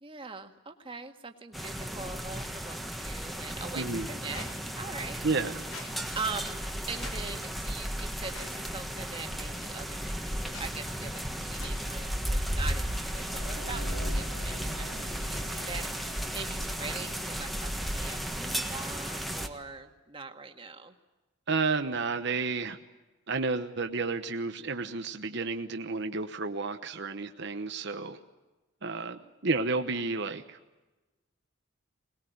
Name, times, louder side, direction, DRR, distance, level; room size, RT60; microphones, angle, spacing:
voice 1, 0.0-4.5 4.8-5.3 6.1-21.0, right 4 dB, 25° right, 5 dB, 1.8 m, -42 dB
sound 1, 1.5-19.5, equal, ahead, 1.5 m, -34 dB
voice 2, 3.7-4.1 5.2-5.6 21.5-22.8 23.3-28.2 28.8-30.6, right 4 dB, 60° right, 6 dB, 1.1 m, -31 dB
Squeak, 4.3-4.5 5.7-5.9 6.9-7.2 8.3-8.5 9.5-9.6 10.4-10.7 11.6-11.8, left 3 dB, 90° left, 5.9 m, -44 dB
sound 2, 13.0-19.2, left 1 dB, 70° left, 1.6 m, -49 dB
22.0 x 20.5 x 9.3 m, 1.2 s
head